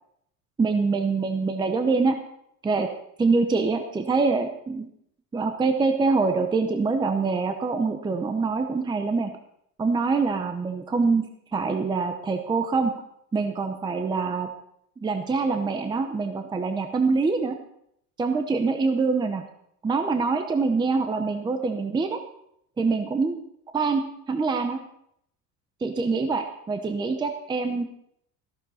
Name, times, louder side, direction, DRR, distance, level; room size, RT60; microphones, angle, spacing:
voice 1, 0.6-2.2 2.6-2.9 3.2-4.9 5.3-9.3 9.8-12.9 13.3-14.5 15.0-17.6 18.2-19.4 19.8-22.2 22.8-23.4 23.7-24.8 25.8-27.8, right 4 dB, 10° right, 7 dB, 0.7 m, -25 dB
14.0 x 12.5 x 4.2 m, 0.72 s
cardioid pair, 160°, 40 cm